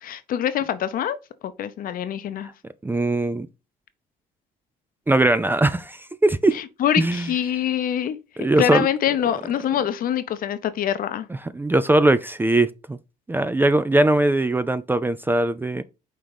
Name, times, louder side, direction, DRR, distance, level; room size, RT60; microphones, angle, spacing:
voice 1, 0.0-1.2 1.4-2.5 6.5-8.2 8.6-11.3, left 10 dB, 55° left, 0.7 m, -24 dB
voice 2, 2.8-3.5 5.1-6.6 7.0-7.3 8.4-8.9 11.4-13.0 13.3-15.8, right 2 dB, 10° right, 0.4 m, -20 dB
5.3 x 3.8 x 4.8 m
cardioid pair, 110°, 17 cm